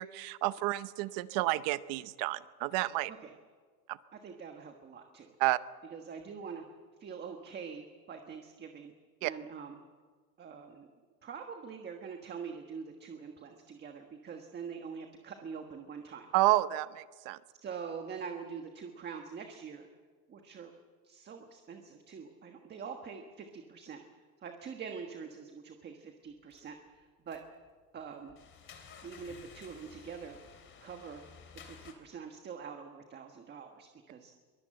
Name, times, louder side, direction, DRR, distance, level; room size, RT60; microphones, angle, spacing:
voice 1, 0.0-3.1 3.9-4.0 5.4-5.6 9.2-9.3 16.3-17.4, right 18 dB, 50° right, 15 dB, 0.8 m, -30 dB
voice 2, 4.1-5.4 5.9-6.6 7.0-8.9 9.2-9.8 10.4-10.9 11.2-16.3 17.6-19.9 20.3-20.7 21.0-24.0 24.4-27.4 27.9-28.4 29.0-30.4 30.8-31.2 31.5-34.3, right 6 dB, 20° right, 4 dB, 1.4 m, -44 dB
sound 1, 26.5-26.7 27.3-27.7 27.9-31.9, left 6 dB, 25° left, 3.2 m, -54 dB
23.0 x 21.0 x 7.7 m, 1.6 s
supercardioid pair, 155°, 45 cm